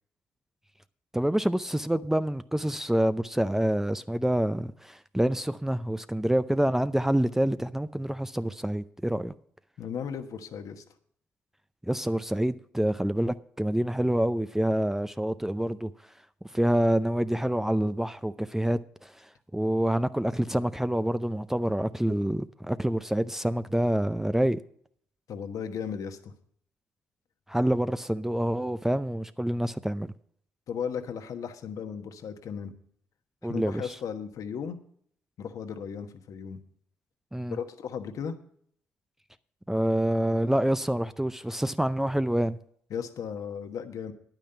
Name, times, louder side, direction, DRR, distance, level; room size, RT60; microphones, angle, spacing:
voice 1, 1.1-9.3 11.9-15.9 16.5-19.1 19.5-24.6 27.5-30.1 33.4-33.8 37.3-37.6 39.7-42.6, right 1 dB, 5° right, 0.5 m, -27 dB
voice 2, 9.8-10.8 25.3-26.3 30.7-32.7 33.5-34.8 35.4-36.6 37.5-38.3 42.9-44.1, left 7 dB, 65° left, 1.2 m, -35 dB
10.0 x 9.2 x 5.5 m
hypercardioid pair, 55°, 6 cm